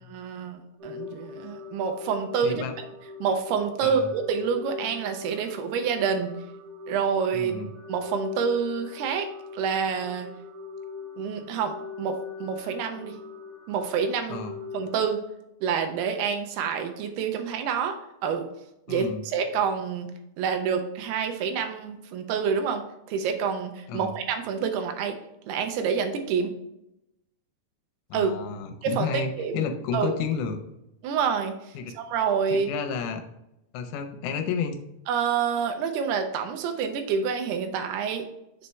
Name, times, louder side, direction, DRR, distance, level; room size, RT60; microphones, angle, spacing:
voice 1, 0.1-2.9 3.2-6.3 6.9-7.5 7.9-9.3 9.5-10.3 11.2-13.2 13.7-14.4 14.7-15.2 15.6-18.0 18.2-18.5 18.9-20.1 20.4-25.2 25.5-26.5 28.1-28.4 28.8-29.6 29.9-30.2 31.0-31.5 31.9-32.7 35.1-38.3, right 6 dB, 80° right, 6 dB, 2.4 m, -27 dB
sound 1, 0.8-15.0, left 5 dB, 65° right, 1.4 m, -41 dB
voice 2, 2.4-2.7 3.8-4.1 7.3-7.7 14.3-14.5 18.9-19.2 23.9-24.1 28.1-30.6 31.8-32.0 32.5-33.2 33.7-34.8, left 6 dB, 85° left, 6 dB, 3.0 m, -31 dB
6.8 x 4.2 x 3.3 m, 0.86 s
omnidirectional pair, 5.0 m